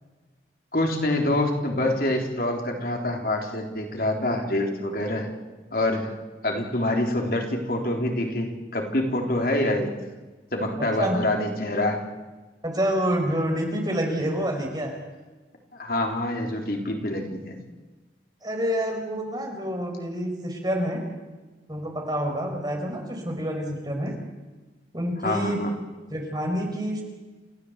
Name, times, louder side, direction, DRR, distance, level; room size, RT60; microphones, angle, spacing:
voice 1, 0.7-5.3 5.7-6.1 6.4-9.9 10.5-12.0 15.7-17.5 25.2-25.7, left 1 dB, 55° left, 2 dB, 3.8 m, -26 dB
voice 2, 12.6-14.9 18.4-21.0 21.7-24.1 24.9-25.6 26.1-27.0, equal, 25° right, 2 dB, 5.1 m, -27 dB
29.0 x 15.5 x 8.2 m, 1.2 s
head